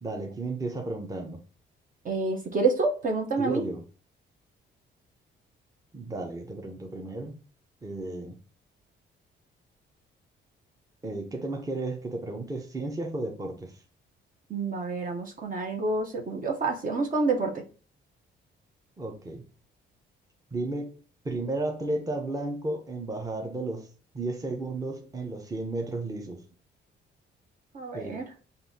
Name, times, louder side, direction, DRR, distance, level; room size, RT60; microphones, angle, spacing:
voice 1, 0.0-1.4 3.4-3.8 5.9-7.4 7.8-8.4 11.0-13.8 19.0-19.4 20.5-20.9 21.2-23.9 24.1-26.4 27.9-28.2, right 2 dB, 15° right, 3 dB, 0.8 m, -33 dB
voice 2, 2.0-3.7 14.5-17.6 27.7-28.2, right 3 dB, 45° right, 2 dB, 0.9 m, -28 dB
5.4 x 2.7 x 2.7 m, 0.39 s
cardioid pair, 90°, 20 cm